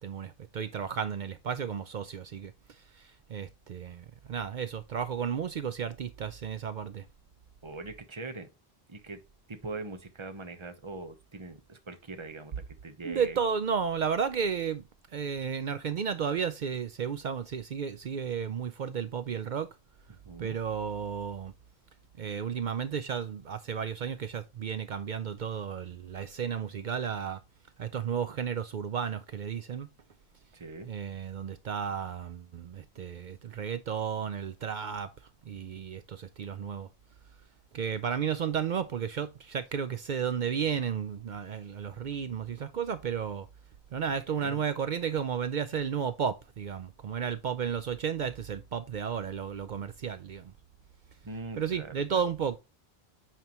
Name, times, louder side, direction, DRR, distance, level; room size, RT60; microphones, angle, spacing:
voice 1, 0.0-7.1 13.0-14.8 15.1-19.7 20.4-21.5 22.2-27.4 27.8-29.9 30.9-36.9 37.7-43.5 43.9-50.5 51.6-52.6, right 7 dB, 55° right, 0.6 m, -33 dB
voice 2, 7.6-8.5 8.9-9.2 9.5-13.4 20.1-20.6 30.5-30.9 44.3-44.6 51.2-52.2, right 3 dB, 30° right, 0.9 m, -42 dB
8.9 x 4.6 x 2.9 m
omnidirectional pair, 1.1 m